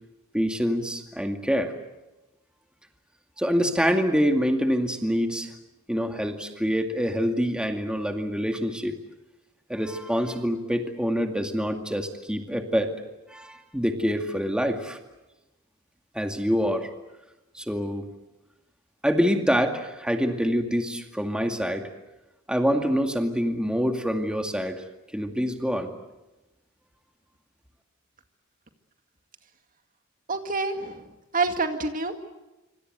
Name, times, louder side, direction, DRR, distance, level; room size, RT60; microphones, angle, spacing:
voice 1, 0.3-1.7 3.4-5.5 5.9-9.0 9.7-12.9 13.3-15.0 16.1-16.9 17.5-18.1 19.0-21.9 22.5-24.8 25.1-25.9, equal, 5° right, 4 dB, 2.3 m, -26 dB
voice 2, 30.3-31.0 31.3-32.2, right 3 dB, 40° right, 6 dB, 2.1 m, -27 dB
26.0 x 26.0 x 8.1 m, 1.0 s
head